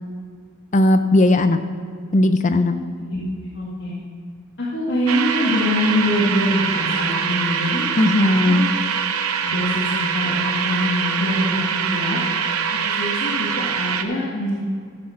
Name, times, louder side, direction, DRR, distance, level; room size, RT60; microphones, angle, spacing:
voice 1, 0.7-1.6 2.1-2.7 8.0-8.7, left 1 dB, 35° left, 9 dB, 0.6 m, -16 dB
voice 2, 3.5-3.9 4.6-7.9 8.2-8.6 9.4-12.2 12.7-14.6, left 1 dB, 55° left, -8 dB, 2.0 m, -24 dB
sound 1, 5.1-14.0, right 7 dB, 90° right, 0.7 m, -24 dB
14.0 x 6.4 x 5.7 m, 2.1 s
head